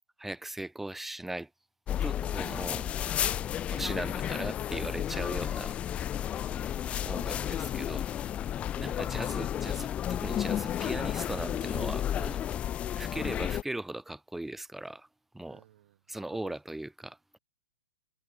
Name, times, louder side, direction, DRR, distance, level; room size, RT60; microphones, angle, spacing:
voice 1, 0.2-1.5 2.0-2.9 3.7-5.8 7.0-8.1 8.8-12.4 13.0-15.1 15.3-15.6 16.1-17.4, right 1 dB, 5° right, 5.2 m, -38 dB
sound 1, 1.9-13.6, left 10 dB, 15° left, 0.3 m, -32 dB
voice 2, 8.7-9.1 15.5-16.5, right 14 dB, 50° right, 6.7 m, -58 dB
hypercardioid pair, 150°, 8 cm